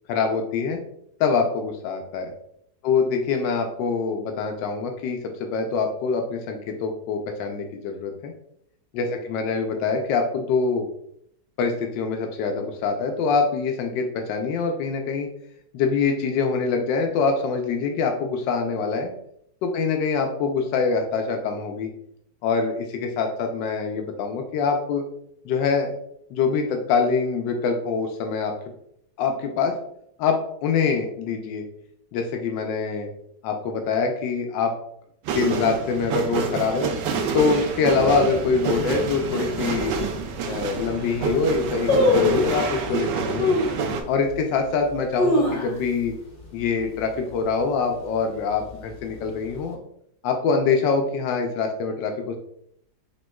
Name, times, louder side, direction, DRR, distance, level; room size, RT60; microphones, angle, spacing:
voice 1, 0.1-0.8 1.2-2.3 2.8-8.3 8.9-10.9 11.6-15.3 15.7-19.1 19.6-21.9 22.4-25.0 25.4-25.9 26.3-28.5 29.2-29.7 30.2-31.6 32.1-33.1 33.4-34.7 35.3-36.9 37.3-40.0 40.5-43.1 43.3-43.6 44.1-46.1 46.5-49.8 50.2-52.4, left 5 dB, 90° left, 4 dB, 1.3 m, -24 dB
sound 1, 35.3-44.0, right 5 dB, 80° right, 1.2 m, -27 dB
sound 2, 39.9-40.0 40.6-40.7 40.9-41.3 41.9-42.6 43.4-43.8 44.3-44.4 44.9-46.1 46.4-46.5 46.8-47.2 47.6-47.9 48.5-49.3 49.6-49.7, left 2 dB, 35° left, 1.1 m, -22 dB
5.1 x 3.7 x 2.3 m, 0.69 s
omnidirectional pair, 1.9 m